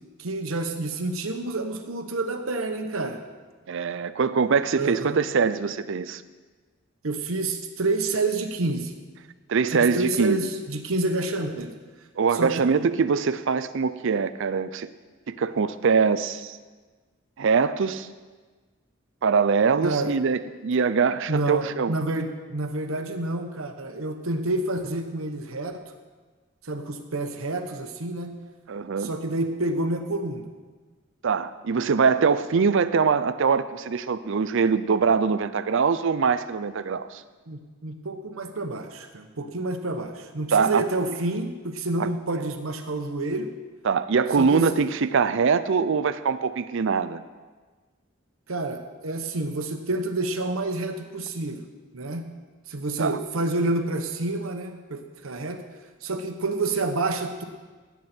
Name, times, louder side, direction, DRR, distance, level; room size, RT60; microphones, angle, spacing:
voice 1, 0.2-3.2 4.8-5.2 7.0-8.9 9.7-11.7 12.3-12.5 19.8-20.1 21.3-25.8 26.6-28.3 29.0-30.4 37.5-43.5 44.4-44.6 48.5-51.7 51.9-52.2 52.7-55.6 56.0-57.4, right 2 dB, 90° right, 6 dB, 1.1 m, -28 dB
voice 2, 3.7-6.2 9.5-10.4 12.2-14.9 15.3-16.6 17.4-18.1 19.2-21.9 28.7-29.1 31.2-37.2 40.5-40.8 42.0-42.1 43.8-47.2 53.0-53.2, right 5 dB, 65° right, 13 dB, 0.5 m, -23 dB
17.0 x 8.3 x 4.4 m, 1.4 s
head